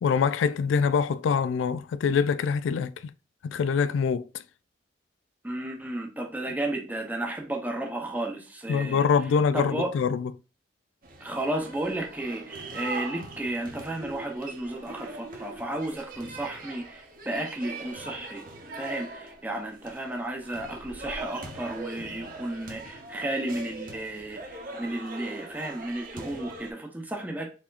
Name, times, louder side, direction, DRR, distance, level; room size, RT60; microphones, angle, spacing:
voice 1, 0.0-2.9 3.4-4.2 8.7-10.3, left 6 dB, 85° left, 0.3 m, -24 dB
voice 2, 5.4-9.0 9.5-9.9 11.2-18.4 18.7-27.5, right 1 dB, 10° right, 0.7 m, -33 dB
sound 1, 11.0-26.7, right 2 dB, 45° right, 1.1 m, -41 dB
4.5 x 4.2 x 2.4 m
head